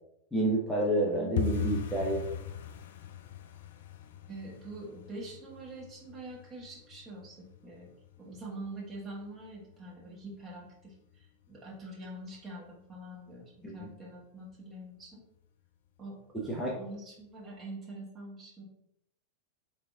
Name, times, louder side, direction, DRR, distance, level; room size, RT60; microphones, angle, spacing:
voice 1, 0.3-2.2 13.6-13.9 16.5-16.8, right 1 dB, 5° left, -4 dB, 0.8 m, -29 dB
sound 1, 1.4-12.1 12.3-13.0 13.3-13.6 13.8-14.2 14.5-14.6 15.1-15.7 16.0-16.1 16.6-16.7, left 9 dB, 55° left, 0.3 m, -41 dB
voice 2, 4.3-7.9 8.2-15.2 16.0-16.5 16.7-18.6, right 2 dB, 25° right, -3 dB, 1.5 m, -45 dB
4.0 x 3.3 x 3.5 m, 0.79 s
figure-of-eight pair, 90°, 0 cm